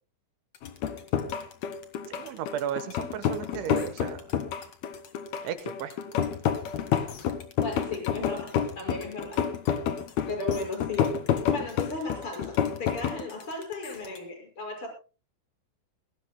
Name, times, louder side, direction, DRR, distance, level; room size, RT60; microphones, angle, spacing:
sound 1, 0.5-14.2, left 6 dB, 50° left, 2.0 m, -50 dB
sound 2, 0.6-13.2, left 8 dB, 65° left, 2.9 m, -29 dB
voice 1, 2.1-4.2 5.4-5.9, right 9 dB, 75° right, 11 dB, 3.4 m, -34 dB
voice 2, 7.6-9.4 10.3-11.2 11.5-14.9, left 3 dB, 25° left, 4 dB, 6.3 m, -35 dB
20.5 x 18.0 x 2.2 m, 0.33 s
omnidirectional pair, 5.6 m